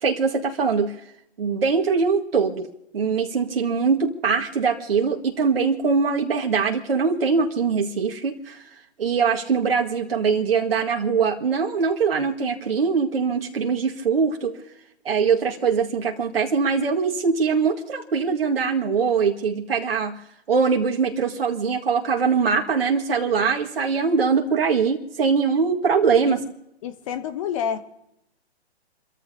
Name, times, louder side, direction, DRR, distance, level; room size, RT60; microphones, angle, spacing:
voice 1, 0.0-1.0 1.4-2.7 2.9-8.6 9.0-14.6 15.1-20.2 20.5-26.4, right 5 dB, 60° right, 0 dB, 2.0 m, -22 dB
voice 2, 26.8-27.8, left 8 dB, 30° left, 10 dB, 1.1 m, -28 dB
29.5 x 14.5 x 2.8 m, 0.81 s
figure-of-eight pair, 130°, 33 cm